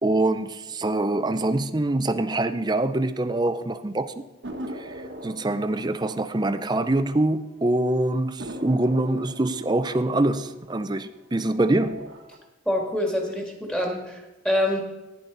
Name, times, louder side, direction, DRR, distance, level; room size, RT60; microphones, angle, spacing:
voice 1, 0.0-4.1 4.8-4.9 5.2-12.0, right 2 dB, 25° right, 0.6 m, -24 dB
sound 1, 4.4-7.5 7.8-7.9 8.4-11.3 11.8-12.4, right 1 dB, 85° right, 1.5 m, -41 dB
voice 2, 12.7-14.8, left 1 dB, 5° left, 2.2 m, -26 dB
14.5 x 10.5 x 3.9 m
head